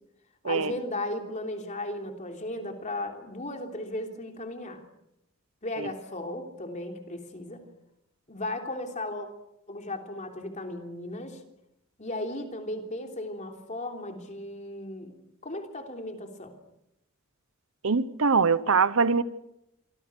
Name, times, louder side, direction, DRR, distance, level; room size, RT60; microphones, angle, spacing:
voice 1, 0.4-4.8 5.6-7.6 8.3-9.3 9.7-11.4 12.0-15.1 15.4-16.6, left 1 dB, 35° left, 3.4 m, -36 dB
voice 2, 17.8-19.2, right 5 dB, 70° right, 0.9 m, -23 dB
26.5 x 24.5 x 6.3 m
head